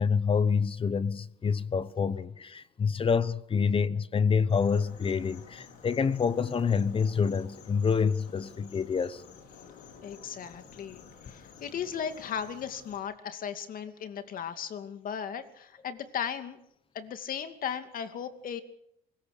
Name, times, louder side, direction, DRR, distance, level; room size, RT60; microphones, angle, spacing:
voice 1, 0.0-9.2, left 6 dB, 30° left, 1.1 m, -27 dB
sound 1, 4.5-13.0, left 6 dB, 85° left, 5.1 m, -51 dB
voice 2, 10.0-16.6 16.9-18.6, left 8 dB, 55° left, 2.6 m, -36 dB
23.5 x 21.5 x 6.7 m
cardioid pair, 110°, 17 cm